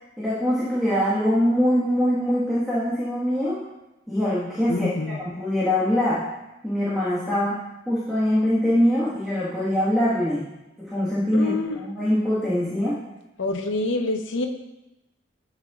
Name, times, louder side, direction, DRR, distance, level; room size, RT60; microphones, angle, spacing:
voice 1, 0.2-3.6 4.1-6.2 6.6-10.4 10.8-12.9, equal, ahead, -10 dB, 1.5 m, -23 dB
voice 2, 4.7-5.2 11.3-11.8 13.4-14.5, left 2 dB, 80° left, 5 dB, 0.7 m, -26 dB
13.5 x 5.4 x 2.4 m, 0.97 s
head